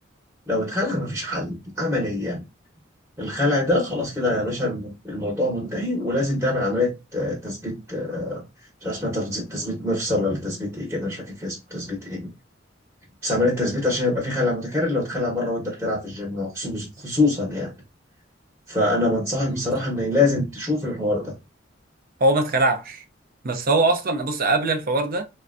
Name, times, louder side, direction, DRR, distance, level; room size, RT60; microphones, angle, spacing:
voice 1, 0.5-2.4 3.2-8.4 8.8-12.3 13.2-17.7 18.7-21.3, left 2 dB, 10° right, 0.9 m, -25 dB
voice 2, 22.2-23.0 23.4-25.2, right 2 dB, 50° right, 0.5 m, -22 dB
3.7 x 2.1 x 2.4 m
head